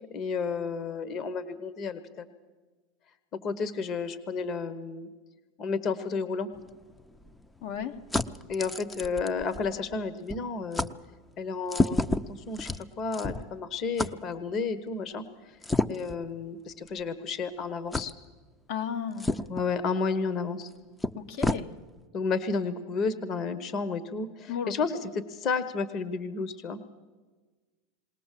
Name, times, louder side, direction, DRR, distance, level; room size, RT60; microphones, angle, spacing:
voice 1, 0.1-2.3 3.3-5.1 5.6-6.5 8.5-10.9 11.4-15.2 15.9-18.1 19.3-20.7 22.1-26.8, left 4 dB, 40° left, 13 dB, 1.1 m, -32 dB
sound 1, 6.5-10.0 10.3-10.5 10.7-10.9 11.7-13.6 14.0-14.1 15.6-16.2 16.9-17.0 17.9-18.1 19.2-19.7 20.6-20.7 21.0-21.6, left 2 dB, 10° left, 0.6 m, -30 dB
voice 2, 7.6-7.9 18.7-19.3 21.1-21.7 24.5-24.7, left 8 dB, 70° left, 6 dB, 1.3 m, -33 dB
20.5 x 18.5 x 7.5 m, 1.3 s
supercardioid pair, 125°, 0 cm